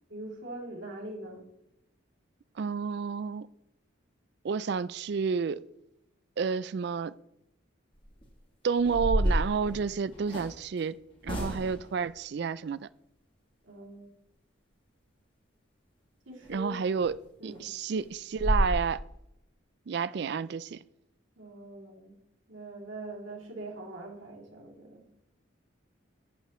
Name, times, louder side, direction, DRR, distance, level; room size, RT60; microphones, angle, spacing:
voice 1, 0.1-1.4 13.7-14.1 16.3-16.7 17.4-17.6 21.4-22.1 22.5-25.0, right 2 dB, 75° right, 2.9 m, -42 dB
voice 2, 2.6-3.5 4.4-5.6 6.4-7.1 8.6-12.8 16.5-19.0 19.9-20.8, right 5 dB, 55° right, 0.3 m, -30 dB
sound 1, 7.9-8.2 8.8-10.5 11.2-11.9 16.4-16.6 17.0-17.1 17.5-17.6 18.0-18.1 18.4-18.7, equal, 25° left, 1.8 m, -29 dB
11.5 x 8.6 x 3.1 m
head